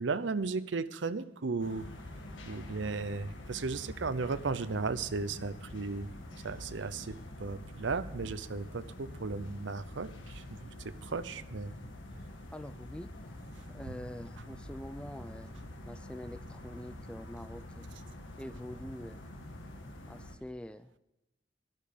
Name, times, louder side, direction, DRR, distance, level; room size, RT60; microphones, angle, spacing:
voice 1, 0.0-1.8 2.4-6.1 6.4-10.7 11.0-11.7, right 4 dB, 75° right, 14 dB, 0.6 m, -35 dB
sound 1, 1.6-20.3, left 1 dB, 85° left, 1.7 m, -46 dB
voice 2, 12.5-13.4 13.7-15.5 15.9-17.9 18.4-19.2 20.1-21.0, equal, 5° left, 12 dB, 0.4 m, -45 dB
12.0 x 12.0 x 5.1 m, 0.89 s
head